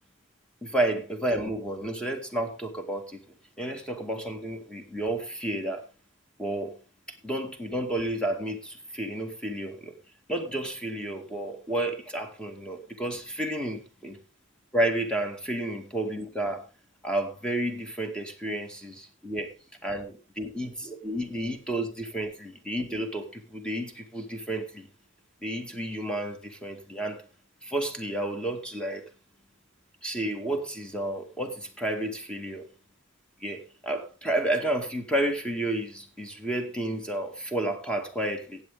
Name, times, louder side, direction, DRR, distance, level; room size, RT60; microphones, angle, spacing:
voice 1, 0.6-3.2 3.6-5.8 6.4-6.8 7.1-9.9 10.3-14.2 14.7-16.7 17.0-19.5 19.8-24.9 25.4-27.3 27.6-29.0 30.0-32.7 33.4-38.6, right 1 dB, 5° left, 2.0 m, -31 dB
15.5 x 8.8 x 3.7 m
head